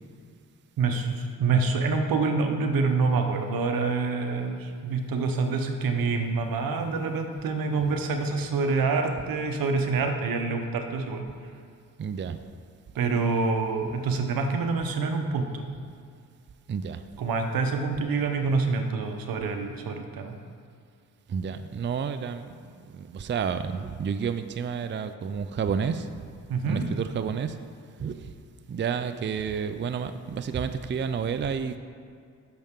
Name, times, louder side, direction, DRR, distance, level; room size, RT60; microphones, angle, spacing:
voice 1, 0.8-11.2 12.9-15.7 17.2-20.4 26.5-26.8, right 4 dB, 80° right, 5 dB, 1.0 m, -26 dB
voice 2, 12.0-12.4 16.7-17.0 21.3-26.3 26.7-27.6 28.0-28.3 28.7-31.8, right 6 dB, 35° right, 10 dB, 0.4 m, -30 dB
10.5 x 6.6 x 3.7 m, 2.3 s
cardioid pair, 70°, 34 cm